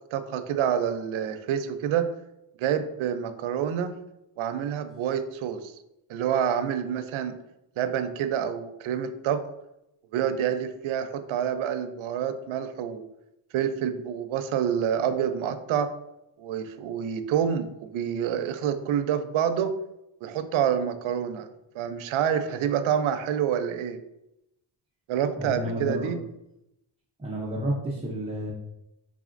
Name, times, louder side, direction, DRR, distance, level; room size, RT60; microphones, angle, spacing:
voice 1, 0.1-2.1 2.6-3.9 4.4-5.7 6.1-7.4 7.8-9.4 10.1-13.1 13.5-15.9 16.4-19.7 20.2-21.5 21.7-24.0 25.1-26.2, right 8 dB, 85° right, 9 dB, 0.5 m, -27 dB
voice 2, 25.4-26.1 27.2-28.5, equal, 15° right, -4 dB, 0.5 m, -30 dB
4.1 x 3.7 x 2.4 m, 0.85 s
wide cardioid pair, 155°, 47 cm